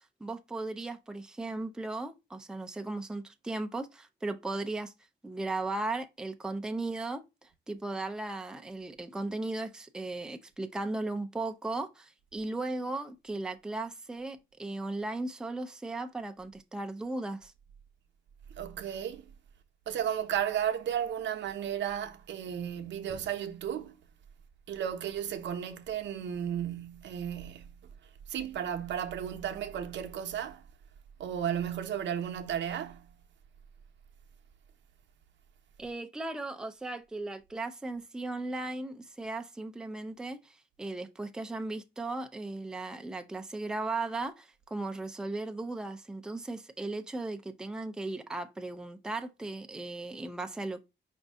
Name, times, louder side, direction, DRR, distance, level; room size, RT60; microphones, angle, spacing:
voice 1, 0.0-4.9 5.2-17.5 35.8-50.8, right 2 dB, 5° right, 0.4 m, -37 dB
voice 2, 18.5-19.3 19.9-24.0 24.7-27.8 28.3-30.6 31.2-33.1, right 9 dB, 85° right, 0.8 m, -34 dB
5.1 x 2.7 x 3.4 m
wide cardioid pair, 165°, 19 cm